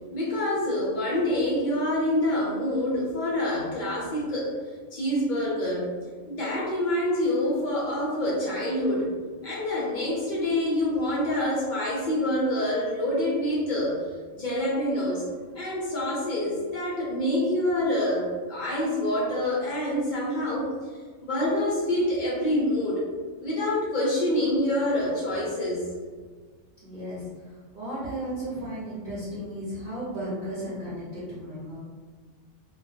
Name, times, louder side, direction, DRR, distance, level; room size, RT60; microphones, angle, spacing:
voice 1, 0.1-4.5 4.9-5.9 6.3-9.1 9.4-14.0 14.3-15.3 15.5-20.7 21.2-23.0 23.4-25.9, left 1 dB, 60° left, -6 dB, 0.5 m, -26 dB
voice 2, 26.8-27.2 27.7-31.8, right 1 dB, 45° right, -11 dB, 0.7 m, -34 dB
2.2 x 2.2 x 2.6 m, 1.5 s
omnidirectional pair, 1.4 m